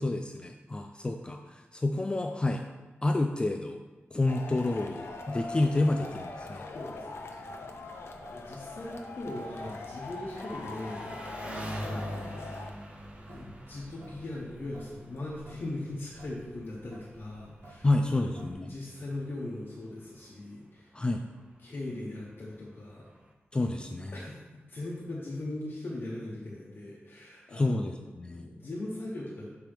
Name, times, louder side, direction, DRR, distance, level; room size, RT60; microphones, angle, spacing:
voice 1, 0.0-2.6 3.0-3.8 4.1-6.7 17.8-18.7 20.9-21.3 23.5-24.2 27.5-28.5, left 2 dB, 20° left, 5 dB, 0.3 m, -29 dB
Male speech man speaking / Shout / Clapping, 4.3-12.7, left 3 dB, 75° left, 0.6 m, -42 dB
Traffic noise roadway noise / Drip / Trickle dribble, 4.5-18.5, right 1 dB, 80° right, 1.2 m, -54 dB
Engine, 5.2-23.3, right 1 dB, 25° right, 0.8 m, -47 dB
voice 2, 6.7-12.6 13.3-18.4 18.7-20.9 21.6-23.1 24.1-24.4 24.7-27.9 28.3-29.5, left 2 dB, 55° left, -5 dB, 1.0 m, -40 dB
7.3 x 4.6 x 3.5 m, 1.2 s
wide cardioid pair, 135°, 4 cm